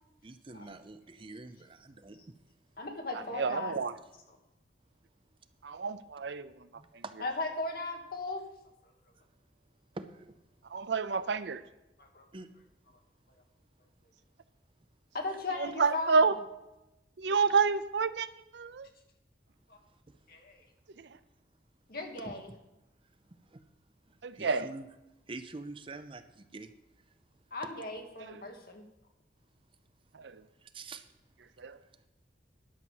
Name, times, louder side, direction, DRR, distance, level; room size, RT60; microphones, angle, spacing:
voice 1, 0.2-2.2 3.7-3.8 6.8-7.1 9.9-10.3 12.3-12.5 22.2-22.3 23.5-23.6 24.1-24.9 25.3-26.7 30.7-31.0, right 3 dB, 30° right, 10 dB, 0.6 m, -45 dB
voice 2, 2.8-3.8 7.2-8.4 12.0-12.2 15.1-16.2 19.7-19.8 20.3-20.6 21.9-22.5 27.5-28.8, left 2 dB, 55° left, 3 dB, 1.6 m, -37 dB
voice 3, 3.3-3.9 5.6-6.5 10.7-11.6 15.6-16.3 17.2-18.3 18.5-18.9 21.0-21.1 24.2-24.7 30.1-30.4 31.6-31.8, right 5 dB, 75° right, 14 dB, 0.5 m, -29 dB
11.0 x 5.9 x 7.3 m, 0.96 s
head